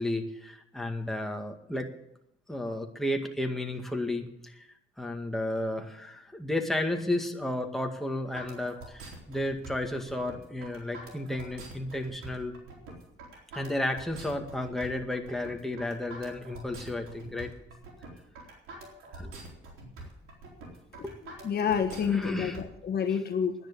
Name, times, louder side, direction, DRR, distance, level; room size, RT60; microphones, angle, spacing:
voice 1, 0.0-1.9 2.5-4.7 5.0-12.5 13.5-17.5 19.1-19.4 21.0-21.2 21.9-22.6 23.1-23.2, left 1 dB, ahead, 2 dB, 2.0 m, -33 dB
sound 1, 8.3-22.6, right 2 dB, 90° right, 4.1 m, -46 dB
voice 2, 21.4-23.5, left 7 dB, 55° left, 6 dB, 1.4 m, -28 dB
10.5 x 10.5 x 8.6 m, 0.80 s
cardioid pair, 90°, 20 cm